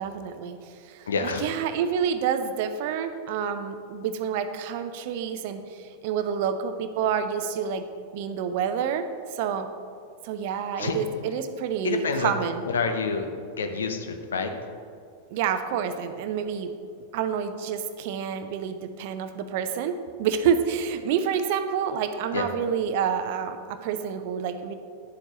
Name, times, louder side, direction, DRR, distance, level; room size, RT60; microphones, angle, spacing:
voice 1, 0.0-7.8 8.1-9.7 10.2-12.6 15.3-16.7 17.1-19.9 20.2-24.7, right 7 dB, 50° right, 10 dB, 0.6 m, -28 dB
voice 2, 1.1-1.5 10.8-11.0 11.8-12.3 12.6-13.3 13.6-14.5 22.3-22.5, left 4 dB, 65° left, 6 dB, 0.7 m, -28 dB
10.5 x 7.8 x 3.0 m, 2.3 s
figure-of-eight pair, 90°, 0 cm